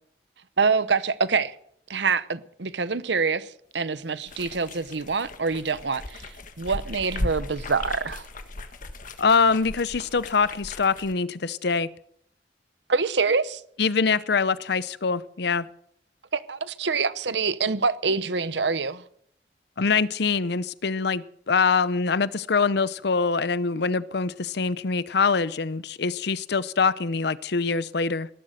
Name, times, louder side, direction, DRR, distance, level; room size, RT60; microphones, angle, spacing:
voice 1, 0.6-1.5 1.9-6.3 6.6-8.2 12.9-13.6 16.3-19.0, right 4 dB, 75° right, 0.9 m, -25 dB
sound 1, 4.2-11.1, left 1 dB, 50° left, 1.5 m, -37 dB
voice 2, 9.2-11.9 13.8-15.7 19.8-28.3, left 5 dB, 65° left, 0.7 m, -24 dB
18.5 x 12.0 x 6.6 m
head